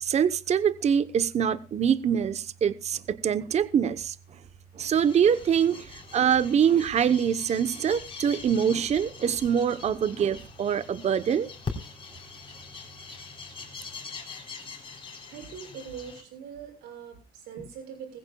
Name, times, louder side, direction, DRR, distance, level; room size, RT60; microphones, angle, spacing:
voice 1, 0.0-4.2 4.7-11.5, right 8 dB, 40° right, 0.8 m, -24 dB
sound 1, 4.9-16.2, left 5 dB, 30° left, 3.8 m, -42 dB
voice 2, 15.3-18.2, right 7 dB, 85° right, 6.7 m, -42 dB
20.5 x 15.5 x 2.2 m
cardioid pair, 110°, 17 cm